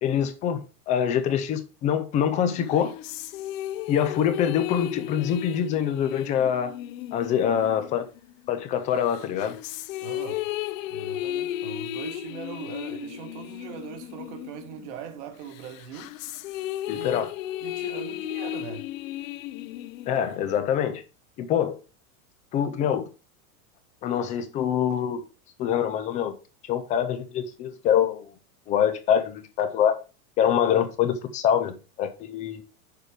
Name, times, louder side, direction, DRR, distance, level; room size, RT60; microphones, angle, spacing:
voice 1, 0.0-0.6 0.9-2.9 3.9-6.8 7.1-8.0 8.5-9.6 16.9-17.3 20.1-21.0 21.4-21.8 22.5-23.1 24.0-25.2 25.6-26.4 26.7-28.3 28.7-30.0 30.4-32.6, left 9 dB, 20° left, 0.4 m, -25 dB
sound 1, 2.6-8.5 9.1-15.1 15.5-20.6, left 14 dB, 60° left, 0.7 m, -35 dB
voice 2, 7.3-7.6 10.0-10.5 10.9-16.1 16.9-17.3 17.6-18.9, right 7 dB, 50° right, 1.5 m, -40 dB
6.8 x 4.6 x 4.9 m
supercardioid pair, 160°, 44 cm